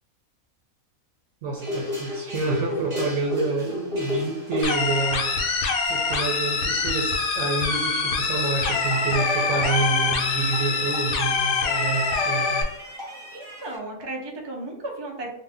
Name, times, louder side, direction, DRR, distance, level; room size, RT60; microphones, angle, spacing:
voice 1, 1.4-5.3 5.9-12.6, right 3 dB, 70° right, -2 dB, 1.0 m, -28 dB
sound 1, 1.6-13.8, left 2 dB, 25° right, 0.9 m, -36 dB
sound 2, 4.6-12.6, left 4 dB, 80° left, 1.0 m, -24 dB
voice 2, 13.3-15.3, right 2 dB, 45° right, -1 dB, 0.3 m, -34 dB
2.7 x 2.5 x 3.4 m, 0.81 s
omnidirectional pair, 1.5 m